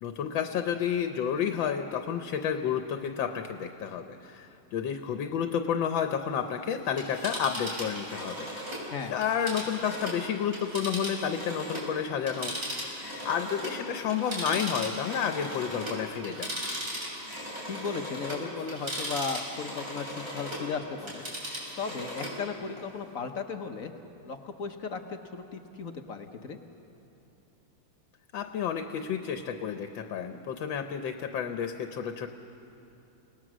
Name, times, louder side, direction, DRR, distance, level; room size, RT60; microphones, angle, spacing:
voice 1, 0.0-8.5 9.1-16.5 28.3-32.3, left 8 dB, 85° left, 7 dB, 1.6 m, -31 dB
Telephone, 6.8-11.9 12.2-20.7 21.0-22.4 22.8-22.9, equal, 45° right, 5.3 m, -37 dB
voice 2, 17.6-21.2 21.8-23.9 24.2-26.6, left 5 dB, 50° left, 6 dB, 1.2 m, -36 dB
29.5 x 18.5 x 6.2 m, 2.8 s
omnidirectional pair, 2.0 m